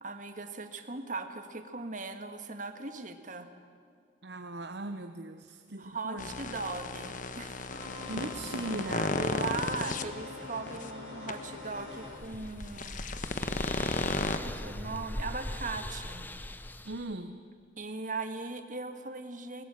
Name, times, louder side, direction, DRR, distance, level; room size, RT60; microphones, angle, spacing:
voice 1, 0.0-3.5 5.8-8.1 9.1-13.2 14.0-16.3 17.8-19.6, right 3 dB, 45° right, 7 dB, 1.7 m, -39 dB
voice 2, 4.2-6.3 8.1-9.2 16.8-17.4, right 2 dB, 65° right, 7 dB, 0.9 m, -39 dB
sound 1, 6.2-10.0 10.7-10.8 11.3-11.4 12.6-14.4, left 3 dB, 45° left, 1.1 m, -34 dB
sound 2, 7.7-12.1, left 2 dB, 75° left, 6.2 m, -44 dB
sound 3, 11.8-17.1, left 1 dB, 10° left, 0.7 m, -40 dB
21.5 x 19.5 x 8.9 m, 2.3 s
head